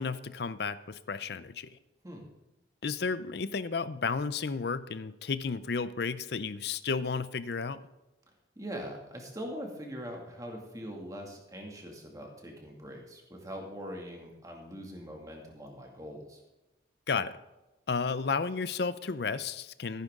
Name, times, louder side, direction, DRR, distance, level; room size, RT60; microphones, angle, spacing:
voice 1, 0.0-1.8 2.8-7.8 17.1-17.4 17.9-20.0, left 5 dB, 60° left, 15 dB, 0.5 m, -32 dB
voice 2, 8.6-16.4, equal, 20° right, 0 dB, 2.2 m, -42 dB
15.0 x 9.9 x 3.7 m, 1.0 s
head